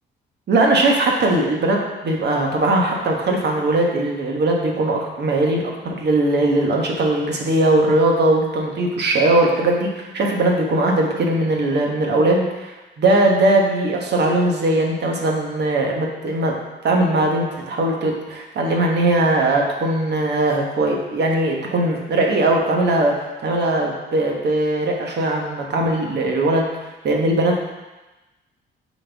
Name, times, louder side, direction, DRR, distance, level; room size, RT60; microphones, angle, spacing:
voice 1, 0.5-1.8 2.0-16.6 16.8-27.7, right 2 dB, 60° right, 0 dB, 1.3 m, -20 dB
7.6 x 4.2 x 3.5 m, 1.1 s
cardioid pair, 90°, 20 cm